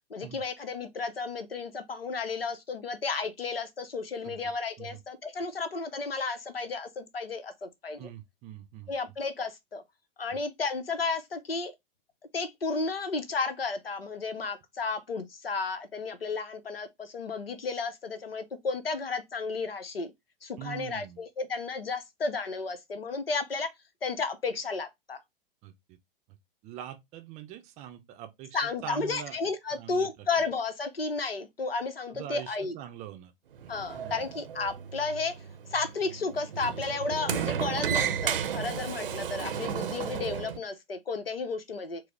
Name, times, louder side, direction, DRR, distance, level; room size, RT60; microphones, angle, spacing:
voice 1, 0.1-8.1 8.9-9.8 10.2-11.7 12.3-20.1 20.4-23.7 24.0-25.2 28.5-32.7 33.7-35.4 35.7-42.0, left 4 dB, 85° left, 0.7 m, -33 dB
voice 2, 8.0-8.9 20.6-21.2 25.6-26.0 26.6-29.4 29.8-30.1 32.1-33.3 33.6-34.3, right 11 dB, 25° right, 0.5 m, -43 dB
Sliding door, 33.5-40.6, right 8 dB, 70° right, 0.6 m, -33 dB
4.6 x 2.0 x 3.2 m
figure-of-eight pair, 100°, 29 cm